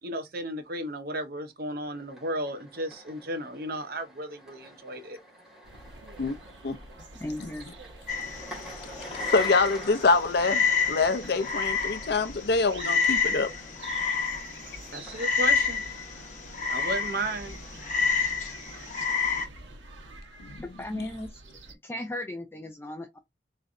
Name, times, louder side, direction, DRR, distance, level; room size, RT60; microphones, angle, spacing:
voice 1, 0.0-5.2 14.9-15.8 16.7-17.6, right 1 dB, 55° right, 0.9 m, -34 dB
sound 1, 1.8-18.8, equal, 5° right, 1.9 m, -48 dB
sound 2, 5.6-21.7, right 2 dB, 85° right, 1.2 m, -48 dB
voice 2, 7.2-7.7 20.6-21.3 21.8-23.2, left 1 dB, 15° left, 0.4 m, -36 dB
Frog, 8.1-19.5, left 5 dB, 45° left, 1.0 m, -29 dB
voice 3, 9.3-13.5 20.4-20.7 20.9-21.1, left 3 dB, 60° left, 0.6 m, -25 dB
3.8 x 3.2 x 2.5 m
head